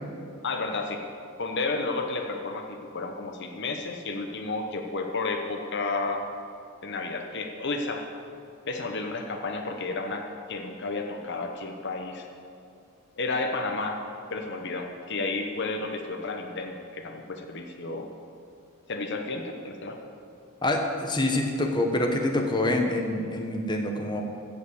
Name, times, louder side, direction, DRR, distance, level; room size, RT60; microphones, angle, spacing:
voice 1, 0.4-1.0 1.4-6.2 6.8-8.1 8.7-12.3 13.2-14.0 14.3-18.1 18.9-20.1, left 3 dB, 55° left, 4 dB, 0.9 m, -32 dB
voice 2, 20.6-24.2, left 1 dB, 20° left, 2 dB, 1.0 m, -26 dB
15.0 x 5.5 x 8.0 m, 2.4 s
head